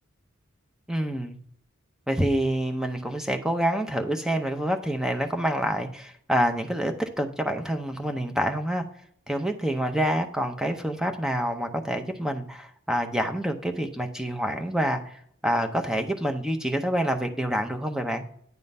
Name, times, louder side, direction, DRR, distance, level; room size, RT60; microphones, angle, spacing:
voice 1, 0.9-1.4 2.1-8.8 9.3-15.1 15.4-18.2, right 1 dB, 5° right, 5 dB, 0.6 m, -27 dB
9.4 x 3.7 x 5.3 m, 0.66 s
head